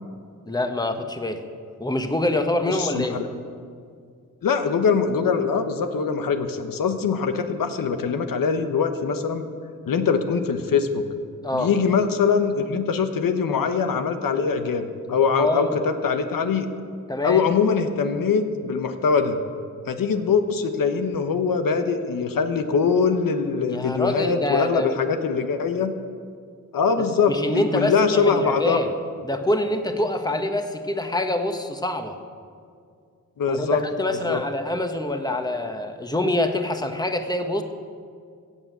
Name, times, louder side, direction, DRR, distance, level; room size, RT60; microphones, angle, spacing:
voice 1, 0.5-1.4 1.8-3.2 11.4-11.7 15.3-15.8 17.1-17.4 23.7-25.0 27.3-28.9 29.2-32.1 33.5-37.6, left 1 dB, 10° left, 6 dB, 1.2 m, -25 dB
voice 2, 2.6-3.3 4.4-9.4 9.9-11.1 11.5-16.7 17.2-19.4 19.9-25.9 26.7-28.8 33.4-33.8 34.3-34.4, left 5 dB, 75° left, 7 dB, 1.0 m, -22 dB
15.0 x 7.3 x 8.2 m, 2.2 s
cardioid pair, 65°, 33 cm